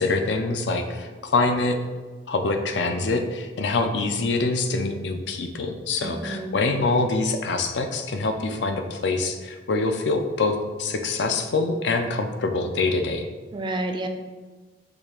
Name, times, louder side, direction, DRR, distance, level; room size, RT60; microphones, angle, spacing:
voice 1, 0.0-1.8 2.3-13.3, left 3 dB, 65° left, 6 dB, 0.5 m, -25 dB
voice 2, 6.0-6.6 13.5-14.1, right 2 dB, 25° right, 5 dB, 0.4 m, -30 dB
5.0 x 2.4 x 4.3 m, 1.4 s
head